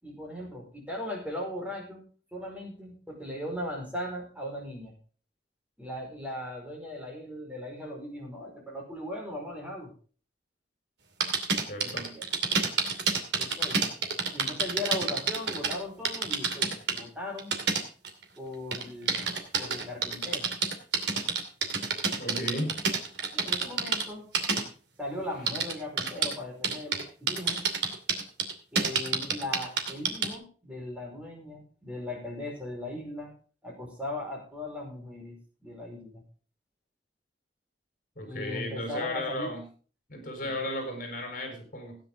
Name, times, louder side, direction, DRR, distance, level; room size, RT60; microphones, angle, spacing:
voice 1, 0.0-4.9 5.8-9.9 11.8-12.3 13.3-13.8 14.3-17.5 18.4-19.3 19.6-20.5 23.3-24.2 25.0-27.6 28.7-33.3 33.6-36.2 38.2-39.5 40.4-40.7, left 1 dB, 10° right, -1 dB, 4.9 m, -38 dB
sound 1, 11.2-15.7 16.0-17.0 17.4-18.2 18.7-24.0 24.3-24.6 25.5-26.3 26.6-27.0 27.3-30.3, right 5 dB, 75° right, 2.6 m, -27 dB
voice 2, 11.7-12.2 22.2-22.8 38.2-39.6 40.1-42.0, left 1 dB, 50° left, 5 dB, 4.4 m, -34 dB
16.5 x 9.6 x 3.7 m, 0.39 s
head